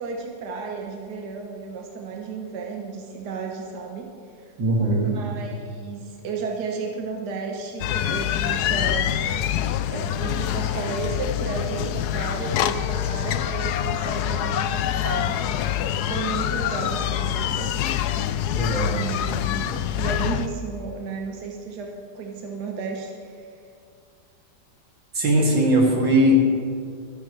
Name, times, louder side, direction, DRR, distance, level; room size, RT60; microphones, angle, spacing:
voice 1, 0.0-4.1 5.0-9.1 9.9-15.4 15.7-17.7 18.9-19.7 20.0-23.5, right 4 dB, 65° right, 0 dB, 1.6 m, -33 dB
voice 2, 4.6-5.1 18.5-18.9 25.1-26.3, right 1 dB, 90° right, -3 dB, 3.3 m, -19 dB
sound 1, 7.8-20.5, left 10 dB, 70° left, 1.0 m, -25 dB
25.0 x 10.0 x 3.3 m, 2.4 s
omnidirectional pair, 1.9 m